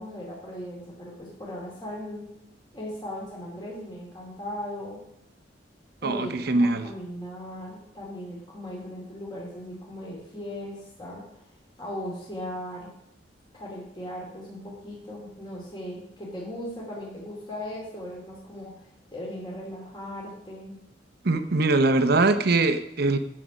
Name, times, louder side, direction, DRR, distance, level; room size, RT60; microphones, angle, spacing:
voice 1, 0.0-2.3 2.7-5.0 6.0-11.4 11.8-12.9 13.5-20.8, left 1 dB, 25° left, -4 dB, 2.4 m, -38 dB
voice 2, 6.0-6.9 21.2-23.2, right 2 dB, 55° right, 9 dB, 0.8 m, -22 dB
9.6 x 7.5 x 5.0 m, 0.75 s
head